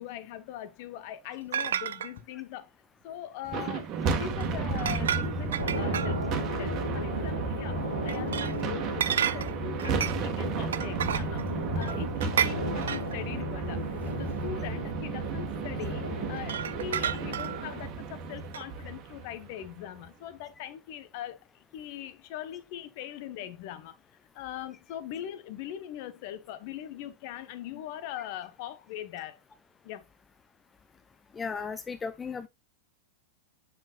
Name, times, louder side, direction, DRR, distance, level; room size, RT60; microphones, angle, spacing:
voice 1, 0.0-2.7 3.0-23.9 24.3-29.4 29.8-30.0, left 11 dB, 45° left, 0.9 m, -41 dB
sound 1, 1.5-2.1 4.4-4.5 4.8-6.4 8.1-8.6 9.0-10.3 10.7-11.5 11.8-13.2 14.1-14.2 16.4-17.7 18.5-18.6, right 9 dB, 65° right, 0.4 m, -31 dB
sound 2, 3.4-19.8, right 4 dB, 35° right, 1.5 m, -33 dB
sound 3, 5.6-17.8, equal, 90° left, 2.6 m, -37 dB
voice 2, 31.3-32.5, left 5 dB, 15° left, 0.5 m, -36 dB
7.7 x 7.0 x 2.4 m
figure-of-eight pair, 90°, 0 cm